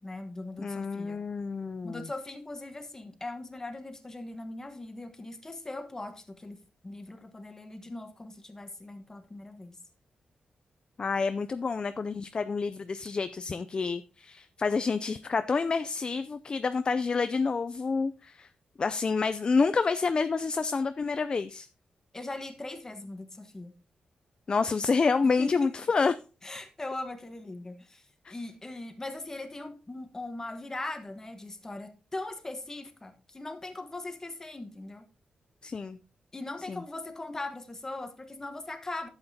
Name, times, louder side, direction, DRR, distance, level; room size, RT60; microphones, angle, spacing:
voice 1, 0.0-1.2 1.8-9.8 22.1-23.7 25.4-25.7 26.4-28.0 28.3-35.1 36.3-39.1, left 2 dB, 20° left, 7 dB, 1.2 m, -40 dB
voice 2, 0.6-2.1 11.0-18.5 18.8-21.7 24.5-26.1 28.2-28.3 35.6-36.0 36.7-36.8, left 4 dB, 35° left, 12 dB, 0.4 m, -28 dB
11.5 x 7.9 x 2.8 m, 0.32 s
wide cardioid pair, 120°, 3 cm